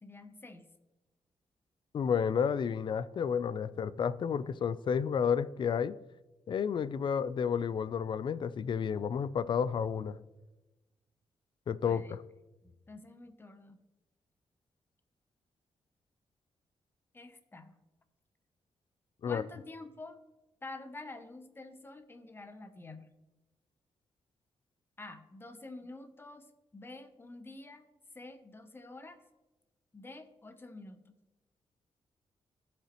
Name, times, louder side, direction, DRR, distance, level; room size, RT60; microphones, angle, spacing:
voice 1, 0.0-0.7 11.8-12.1 12.6-13.8 17.1-17.7 19.2-20.2 20.6-23.1 25.0-26.5 26.7-27.8 28.1-29.2 29.9-31.1, left 2 dB, 20° left, 9 dB, 0.7 m, -48 dB
voice 2, 1.9-5.9 6.5-10.2 11.7-12.2 19.2-19.4, left 7 dB, 50° left, 16 dB, 0.4 m, -31 dB
14.0 x 5.0 x 3.0 m, 1.1 s
wide cardioid pair, 125°, 11 cm